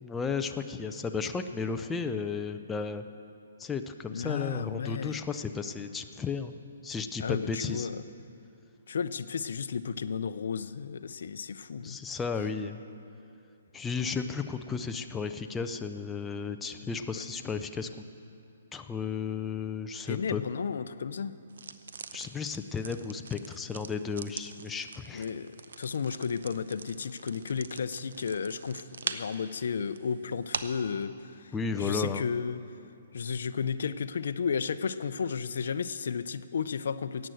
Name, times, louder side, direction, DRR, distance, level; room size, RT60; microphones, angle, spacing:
voice 1, 0.0-3.0 3.6-6.5 6.8-7.9 11.8-12.8 13.7-17.9 18.7-20.4 22.1-25.3 31.5-32.2, left 5 dB, 10° left, 7 dB, 0.4 m, -34 dB
voice 2, 4.1-5.2 7.2-8.0 8.9-12.0 17.1-17.2 20.1-21.4 25.1-25.5 25.8-32.6 33.1-37.3, left 6 dB, 70° left, 14 dB, 0.5 m, -33 dB
sound 1, 21.5-30.9, right 5 dB, 75° right, 0.7 m, -43 dB
15.0 x 9.1 x 7.8 m, 2.7 s
hypercardioid pair, 160°, 0 cm